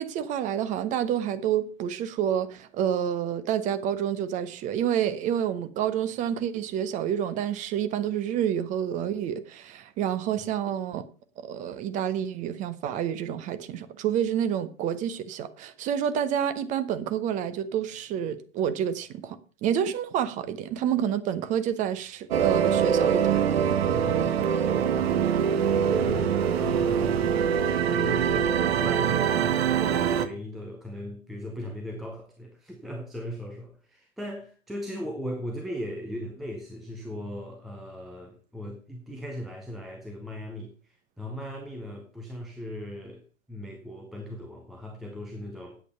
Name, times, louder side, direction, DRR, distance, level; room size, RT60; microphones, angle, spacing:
voice 1, 0.0-11.1 11.4-23.4, right 9 dB, 20° right, 0.8 m, -28 dB
sound 1, 22.3-30.3, right 8 dB, 50° right, 1.2 m, -24 dB
voice 2, 23.9-27.6 27.9-43.2 43.5-45.8, left 1 dB, ahead, 0.4 m, -38 dB
8.8 x 8.0 x 5.5 m
figure-of-eight pair, 110°, 41 cm